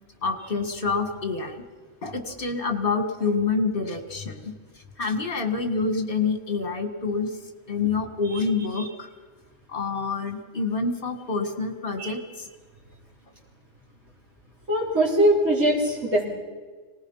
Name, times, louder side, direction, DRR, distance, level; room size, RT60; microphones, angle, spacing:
voice 1, 0.2-1.6 2.0-4.5 5.0-7.4 7.7-9.1 9.7-12.5, left 4 dB, 45° left, 6 dB, 2.3 m, -27 dB
voice 2, 14.7-16.2, right 1 dB, 80° right, -4 dB, 4.3 m, -21 dB
25.0 x 19.5 x 5.7 m, 1.5 s
omnidirectional pair, 1.3 m